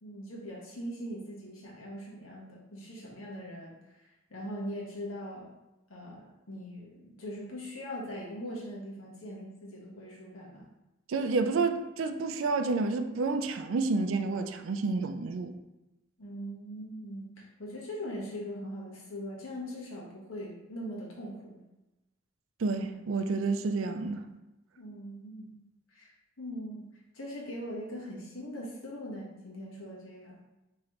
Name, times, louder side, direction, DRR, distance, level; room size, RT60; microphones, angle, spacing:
voice 1, 0.0-5.5 5.9-10.7 16.2-21.6 24.8-25.6 25.9-30.4, equal, 80° left, -3 dB, 1.2 m, -41 dB
voice 2, 11.1-15.5 22.6-24.2, right 3 dB, 70° right, 8 dB, 0.4 m, -29 dB
4.9 x 3.0 x 3.0 m, 0.99 s
head